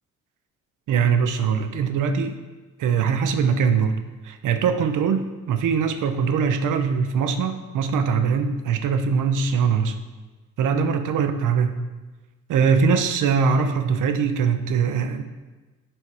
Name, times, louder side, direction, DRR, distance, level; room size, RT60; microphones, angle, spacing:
voice 1, 0.9-2.3 2.8-10.0 10.6-11.8 12.5-15.2, right 6 dB, 75° right, 7 dB, 0.6 m, -22 dB
6.2 x 4.6 x 4.7 m, 1.2 s
cardioid pair, 80°, 32 cm